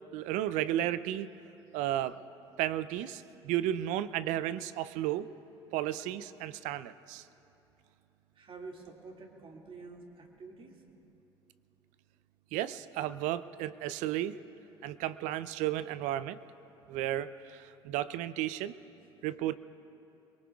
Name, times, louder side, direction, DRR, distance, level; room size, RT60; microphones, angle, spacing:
voice 1, 0.1-1.3 1.7-2.2 2.6-5.3 5.7-7.2 12.5-14.3 14.8-16.4 16.9-18.7 19.2-19.6, right 13 dB, 65° right, 15 dB, 0.5 m, -33 dB
voice 2, 8.4-10.8, right 3 dB, 40° right, 1 dB, 2.2 m, -48 dB
23.5 x 22.5 x 2.4 m, 2.9 s
hypercardioid pair, 55°, 13 cm